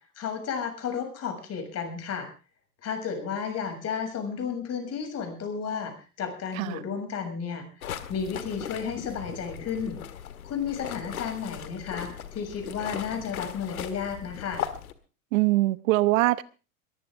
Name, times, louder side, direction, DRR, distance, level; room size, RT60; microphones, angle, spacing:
voice 1, 0.2-2.3 2.8-10.0 10.4-14.6, left 6 dB, 35° left, 7.0 m, -33 dB
sound 1, 7.8-14.9, left 10 dB, 90° left, 1.8 m, -38 dB
voice 2, 15.3-16.4, right 18 dB, 65° right, 1.1 m, -23 dB
22.0 x 15.0 x 3.7 m
hypercardioid pair, 105°, 42 cm